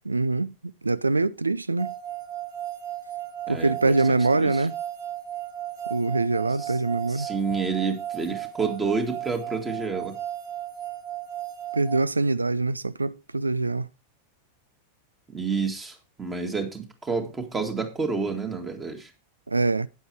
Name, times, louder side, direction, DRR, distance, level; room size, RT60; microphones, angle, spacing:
voice 1, 0.1-1.9 3.5-4.7 5.9-7.3 11.7-13.9 19.5-19.9, right 3 dB, 80° right, 0.4 m, -24 dB
sound 1, 1.8-12.0, right 12 dB, 50° right, 1.5 m, -35 dB
voice 2, 3.5-4.6 6.6-6.8 7.1-10.2 15.3-19.1, right 4 dB, 15° right, 2.3 m, -29 dB
9.5 x 7.9 x 4.6 m
figure-of-eight pair, 90°, 0 cm